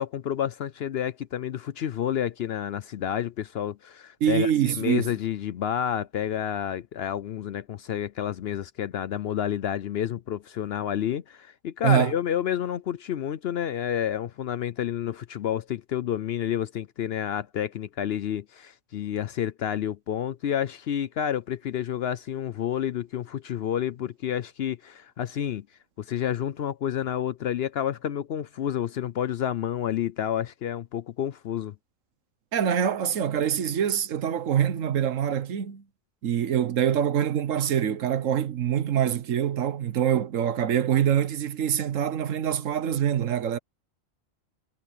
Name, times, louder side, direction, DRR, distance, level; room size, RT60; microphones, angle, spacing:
voice 1, 0.0-25.7 26.0-31.7, left 10 dB, 60° left, 0.7 m, -29 dB
voice 2, 4.2-5.1 11.8-12.1 32.5-35.8 36.2-43.6, right 9 dB, 75° right, 1.3 m, -25 dB
omnidirectional pair, 1.4 m